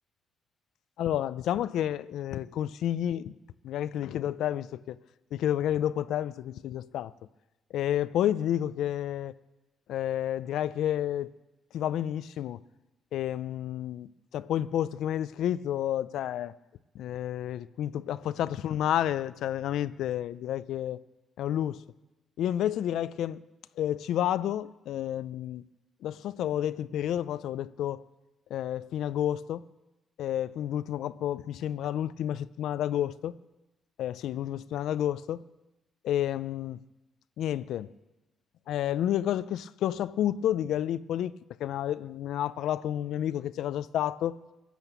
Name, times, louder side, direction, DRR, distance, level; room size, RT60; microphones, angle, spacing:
voice 1, 1.0-3.4 3.6-5.0 5.3-7.1 7.7-9.3 9.9-11.3 11.7-12.6 13.1-16.6 16.9-21.0 21.4-21.8 22.4-23.4 23.8-25.6 26.0-28.0 28.5-29.6 30.2-33.4 34.0-35.4 36.0-36.8 37.4-37.9 38.7-41.3 41.6-44.4, left 11 dB, 80° left, 0.4 m, -30 dB
16.5 x 11.0 x 8.2 m
cardioid pair, 90°, 0 cm